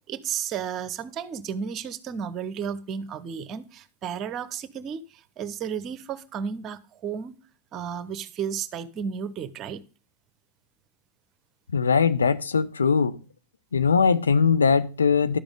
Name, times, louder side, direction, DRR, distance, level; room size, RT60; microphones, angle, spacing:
voice 1, 0.1-7.3 7.7-9.8, right 7 dB, 30° right, 0.8 m, -33 dB
voice 2, 11.7-13.2 13.7-15.4, left 5 dB, 70° left, 0.6 m, -21 dB
11.5 x 7.0 x 3.6 m
figure-of-eight pair, 90°, 0 cm